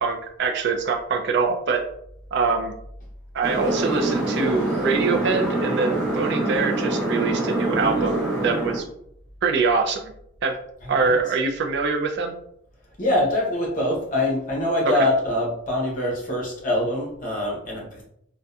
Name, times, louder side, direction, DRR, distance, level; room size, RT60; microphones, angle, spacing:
voice 1, 0.0-1.8 2.3-2.7 3.3-8.8 9.4-10.1 10.4-10.6 10.9-12.3, right 4 dB, 55° right, 3 dB, 0.3 m, -24 dB
sound 1, 3.4-8.8, right 2 dB, ahead, 0.9 m, -25 dB
voice 2, 10.8-11.3 13.0-18.0, left 1 dB, 40° left, -3 dB, 0.8 m, -24 dB
2.6 x 2.1 x 2.3 m, 0.72 s
head